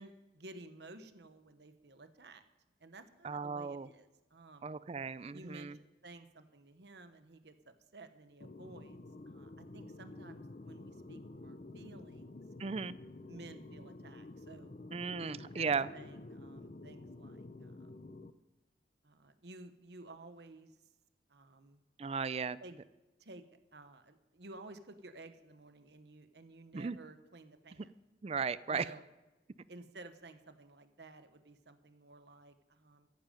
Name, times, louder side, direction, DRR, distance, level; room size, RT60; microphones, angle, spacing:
voice 1, 0.0-2.4 2.8-4.7 5.3-9.0 9.3-12.4 13.3-14.7 15.2-18.0 19.0-20.8 21.3-21.8 22.6-22.7 23.2-23.4 23.7-28.0 28.7-29.0 29.7-33.1, right 2 dB, 75° right, 9 dB, 1.1 m, -54 dB
voice 2, 3.2-3.9 4.6-5.8 12.6-13.0 14.9-15.9 22.0-22.6 26.7-27.0 27.8-27.9 28.2-28.8, right 5 dB, 35° right, 17 dB, 0.4 m, -36 dB
sound 1, 8.4-18.3, left 2 dB, 45° left, 0.6 m, -50 dB
14.5 x 10.5 x 5.2 m, 1.1 s
head